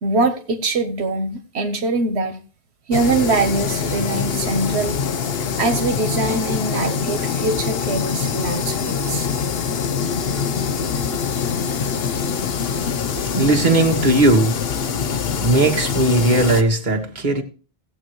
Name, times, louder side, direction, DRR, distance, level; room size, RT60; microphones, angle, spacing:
voice 1, 0.0-2.4 2.9-5.0 5.6-9.3, right 3 dB, 85° right, 1.3 m, -23 dB
sound 1, 2.9-16.6, left 6 dB, 70° left, 1.0 m, -24 dB
voice 2, 13.1-14.6 15.3-17.4, right 2 dB, 45° right, 1.7 m, -18 dB
17.5 x 7.9 x 3.1 m
omnidirectional pair, 1.1 m